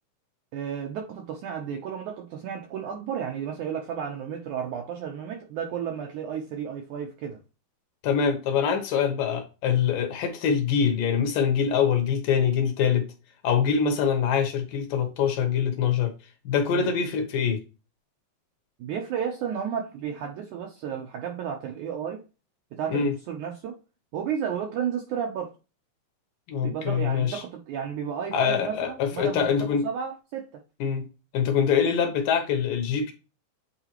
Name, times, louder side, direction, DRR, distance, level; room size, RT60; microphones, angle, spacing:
voice 1, 0.5-7.4 16.7-16.9 18.8-22.2 22.7-23.8 24.1-25.5 26.6-30.6, right 8 dB, 75° right, 1.8 m, -32 dB
voice 2, 8.0-13.1 13.4-16.1 16.5-17.6 22.9-23.1 26.5-27.4 28.3-29.8 30.8-31.1 31.3-33.1, left 7 dB, 70° left, 2.4 m, -24 dB
8.7 x 4.1 x 2.9 m
omnidirectional pair, 4.4 m